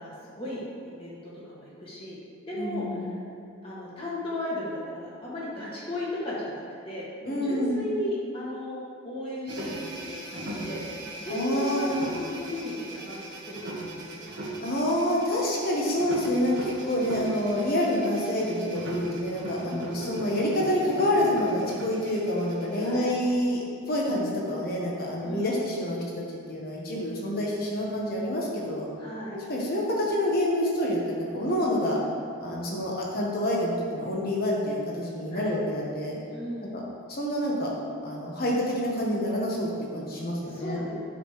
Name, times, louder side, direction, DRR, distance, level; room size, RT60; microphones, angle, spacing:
voice 1, 0.0-2.2 2.5-3.2 3.6-14.3 19.6-20.0 22.8-23.1 25.2-25.7 29.0-29.4 35.3-35.6 36.3-36.8 40.5-40.9, left 1 dB, 25° left, -7 dB, 1.9 m, -36 dB
voice 2, 2.5-3.1 7.2-7.8 11.3-12.0 14.6-26.0 26.3-28.9 29.5-32.0 32.4-36.2 36.7-36.8 37.1-37.7 38.0-40.8, left 1 dB, 45° left, -3 dB, 1.4 m, -27 dB
sound 1, 9.5-23.0, right 1 dB, 60° right, 1.4 m, -38 dB
8.8 x 6.7 x 3.3 m, 2.3 s
head